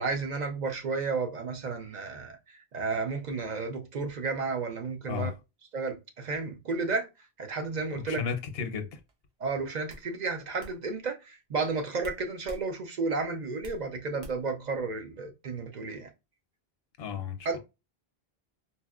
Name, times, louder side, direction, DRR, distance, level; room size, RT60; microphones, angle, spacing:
voice 1, 0.0-5.3 5.7-7.1 7.4-8.2 9.4-16.1 17.4-17.6, right 4 dB, 55° right, 0.6 m, -32 dB
voice 2, 7.9-9.0 17.0-17.6, left 6 dB, 75° left, 0.8 m, -34 dB
sound 1, 9.1-9.3 9.9-10.1 10.6-10.8 12.0-12.7 13.0-13.8 14.2-14.6, equal, 80° right, 1.0 m, -45 dB
4.1 x 2.1 x 2.3 m
omnidirectional pair, 1.0 m